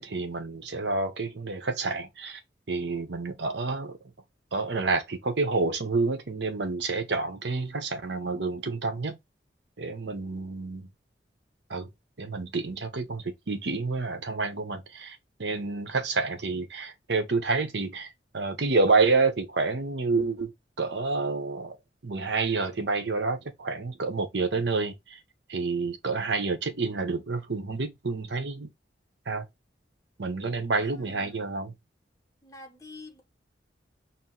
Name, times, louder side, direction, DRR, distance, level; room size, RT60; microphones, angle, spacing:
voice 1, 0.0-2.4 2.7-4.0 4.5-9.2 9.8-10.9 11.7-11.9 12.2-20.5 20.8-21.8 22.0-25.2 25.5-28.7 29.3-29.5 30.2-31.7, right 3 dB, 70° right, 0.8 m, -29 dB
voice 2, 30.8-31.5 32.4-33.2, left 2 dB, 20° left, 0.9 m, -47 dB
4.5 x 2.1 x 3.8 m
head